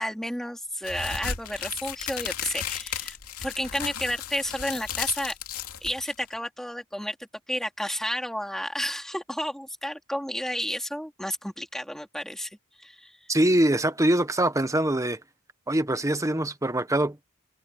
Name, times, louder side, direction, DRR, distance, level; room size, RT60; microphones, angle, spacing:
voice 1, 0.0-3.2 3.4-5.4 5.8-7.2 7.5-12.5 12.8-13.1, equal, ahead, 3.6 m, -31 dB
sound 1, 0.8-6.3, left 8 dB, 75° left, 2.8 m, -34 dB
voice 2, 13.3-15.2 15.7-17.3, right 1 dB, 15° right, 1.2 m, -23 dB
head